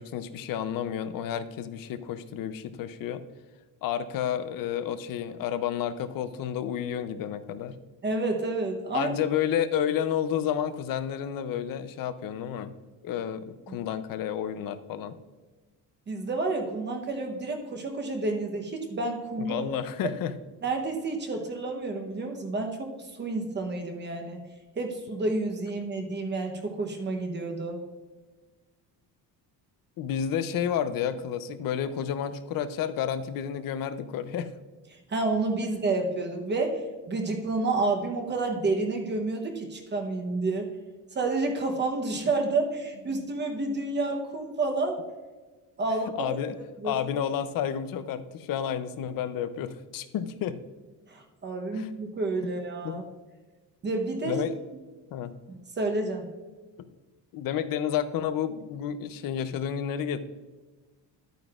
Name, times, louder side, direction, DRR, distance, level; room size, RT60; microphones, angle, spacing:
voice 1, 0.0-3.2 3.8-7.8 8.9-12.7 13.0-15.2 19.4-20.3 30.0-34.5 46.2-46.5 46.8-50.6 51.7-51.9 52.8-53.0 54.2-54.5 55.1-55.3 57.3-60.2, left 9 dB, 55° left, 12 dB, 0.6 m, -30 dB
voice 2, 8.0-9.1 13.7-13.8 16.1-19.7 20.0-20.1 20.6-22.9 23.2-24.5 24.8-27.8 35.1-36.8 37.1-40.7 41.1-45.0 45.8-46.4 46.8-46.9 51.1-53.0 53.8-54.4 55.5-56.3, right 3 dB, 25° right, 3 dB, 0.9 m, -29 dB
11.5 x 9.1 x 2.4 m, 1.3 s
cardioid pair, 170°, 41 cm